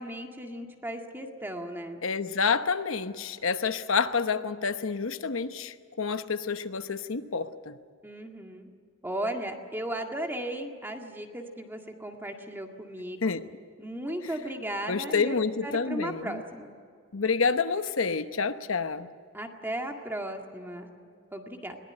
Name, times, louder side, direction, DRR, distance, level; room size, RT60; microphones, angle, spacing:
voice 1, 0.0-2.0 8.0-8.7 9.0-13.2 13.8-15.3 15.6-16.7 19.3-20.9 21.3-21.8, right 1 dB, 10° right, 3 dB, 2.0 m, -36 dB
voice 2, 2.0-7.8 13.2-13.4 14.9-16.4 17.1-19.1, left 5 dB, 65° left, 10 dB, 1.0 m, -28 dB
21.5 x 19.0 x 9.9 m, 2.2 s
head